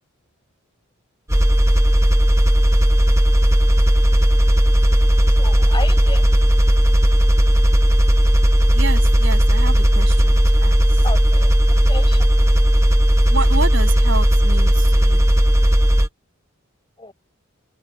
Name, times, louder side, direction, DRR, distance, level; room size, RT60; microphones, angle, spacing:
sound 1, 1.3-16.1, equal, 15° right, 1.2 m, -15 dB
voice 1, 5.2-6.4 11.0-12.5 17.0-17.1, left 2 dB, 20° left, 5.9 m, -34 dB
voice 2, 8.7-10.8 13.3-15.3, right 3 dB, 60° right, 7.6 m, -29 dB
head